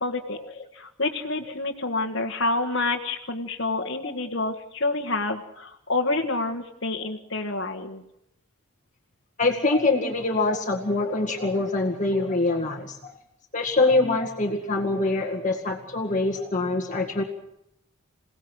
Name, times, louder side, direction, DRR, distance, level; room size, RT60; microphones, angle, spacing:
voice 1, 0.0-8.0, left 2 dB, 60° left, 1 dB, 1.6 m, -28 dB
voice 2, 3.8-4.1 9.4-13.2 13.5-17.2, left 2 dB, 35° left, 1 dB, 2.1 m, -24 dB
28.0 x 18.0 x 6.3 m, 0.78 s
head